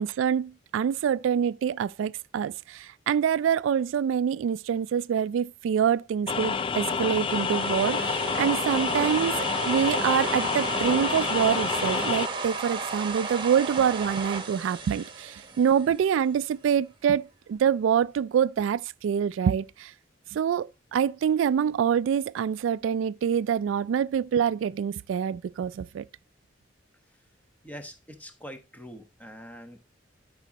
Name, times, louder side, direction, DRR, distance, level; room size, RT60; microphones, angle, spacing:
voice 1, 0.0-19.9 20.3-26.0, right 8 dB, 85° right, 0.3 m, -26 dB
sound 1, 6.3-12.3, left 5 dB, 25° left, 0.3 m, -28 dB
sound 2, 6.9-16.1, right 4 dB, 25° right, 1.2 m, -34 dB
voice 2, 27.6-29.9, equal, 10° left, 0.9 m, -44 dB
12.5 x 5.0 x 2.9 m
head